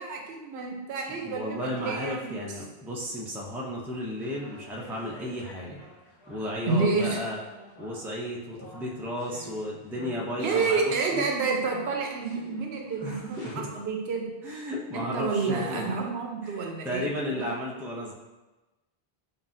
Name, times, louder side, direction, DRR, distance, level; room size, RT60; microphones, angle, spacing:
voice 1, 0.0-2.3 6.7-7.2 10.4-14.3 14.9-17.6, right 4 dB, 90° right, 1 dB, 0.9 m, -29 dB
voice 2, 1.1-5.8 6.3-7.4 7.8-11.2 13.0-13.7 14.4-15.8 16.4-18.1, left 1 dB, 5° right, -3 dB, 0.3 m, -34 dB
sound 1, 4.2-11.1 11.6-13.6, equal, 45° left, 1.3 m, -50 dB
5.6 x 2.3 x 2.6 m, 1.1 s
omnidirectional pair, 1.0 m